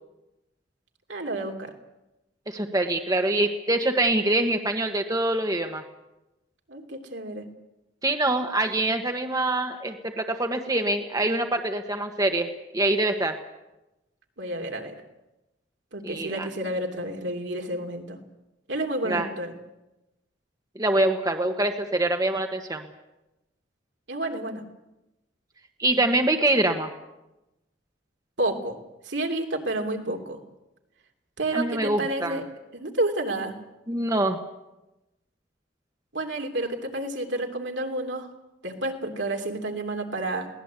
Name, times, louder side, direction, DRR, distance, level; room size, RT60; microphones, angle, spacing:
voice 1, 1.1-1.7 6.7-7.4 14.4-15.0 15.9-18.2 18.7-19.5 24.1-24.6 25.9-26.0 28.4-28.8 29.0-30.4 31.4-32.4 32.7-33.6 36.1-38.3 38.6-40.5, right 1 dB, 70° right, 3 dB, 3.0 m, -30 dB
voice 2, 2.5-5.8 8.0-12.5 12.7-13.4 16.0-16.5 19.0-19.3 20.7-22.8 25.8-26.9 31.5-32.4 33.9-34.4, right 2 dB, 20° right, 4 dB, 1.4 m, -24 dB
22.0 x 18.0 x 8.3 m, 0.97 s
head